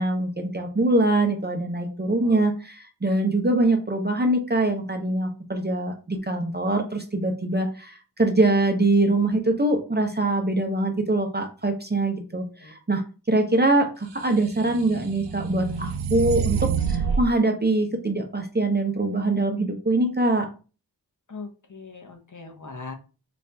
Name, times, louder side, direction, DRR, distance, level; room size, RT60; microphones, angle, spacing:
voice 1, 0.0-13.0 13.3-20.5, right 2 dB, 25° right, 4 dB, 0.6 m, -23 dB
sound 1, 14.3-17.3, right 6 dB, 85° right, 0.6 m, -27 dB
voice 2, 21.3-22.9, left 4 dB, 45° left, 4 dB, 0.8 m, -39 dB
4.2 x 2.4 x 3.3 m, 0.34 s
wide cardioid pair, 80°, 42 cm